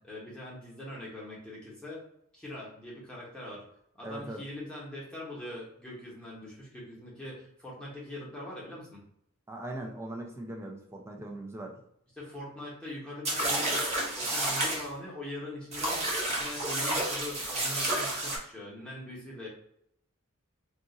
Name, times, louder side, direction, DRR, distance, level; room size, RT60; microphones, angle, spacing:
voice 1, 0.0-2.0 2.3-3.6 4.0-9.0 12.2-19.5, left 1 dB, 5° left, -6 dB, 1.0 m, -42 dB
voice 2, 4.0-4.4 9.5-11.8, right 1 dB, 10° right, 1 dB, 0.5 m, -40 dB
sound 1, 13.2-14.8 15.7-18.4, right 1 dB, 30° right, 0.8 m, -30 dB
2.5 x 2.4 x 3.9 m, 0.71 s
head